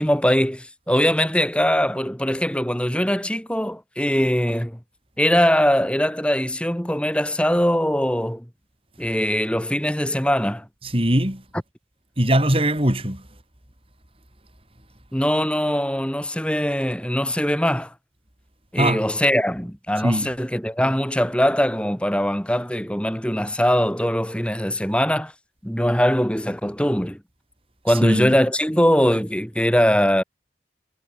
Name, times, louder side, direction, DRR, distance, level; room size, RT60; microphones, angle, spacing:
voice 1, 0.0-4.8 5.2-8.4 9.0-10.7 15.1-17.9 18.7-25.3 25.6-27.2 27.8-30.2, equal, 5° left, 7.2 m, -21 dB
voice 2, 10.8-11.4 12.2-13.2 18.8-19.0 20.0-20.3 27.9-28.4, right 1 dB, 30° right, 6.4 m, -21 dB
head